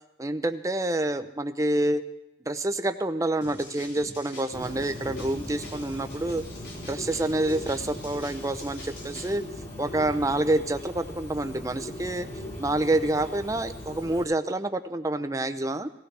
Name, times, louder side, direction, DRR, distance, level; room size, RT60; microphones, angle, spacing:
voice 1, 0.2-2.0 2.5-6.4 6.9-9.4 9.8-12.3 12.6-15.9, right 1 dB, 20° right, 9 dB, 0.6 m, -27 dB
sound 1, 3.4-9.3, left 1 dB, 80° left, 4.5 m, -44 dB
Bird, 4.5-14.2, left 1 dB, 35° left, 2.3 m, -40 dB
18.0 x 16.5 x 3.4 m, 0.90 s
head